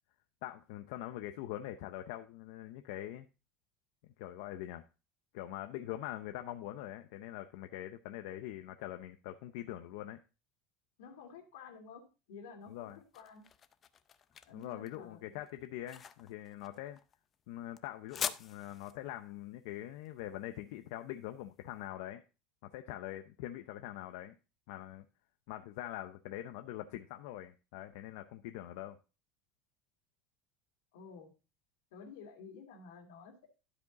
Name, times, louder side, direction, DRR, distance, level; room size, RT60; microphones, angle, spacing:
voice 1, 0.4-3.3 4.2-4.8 5.3-10.2 12.7-13.0 14.5-17.0 17.5-22.2 22.6-24.3 24.7-25.0 25.5-29.0, left 13 dB, 70° left, 7 dB, 0.7 m, -43 dB
voice 2, 11.0-13.4 14.5-15.4 30.9-31.3 31.9-33.5, left 5 dB, 90° left, 3 dB, 2.6 m, -52 dB
sound 1, 12.6-21.7, left 7 dB, 25° left, 0.5 m, -45 dB
12.0 x 5.1 x 4.1 m, 0.31 s
cardioid pair, 155°, 0 cm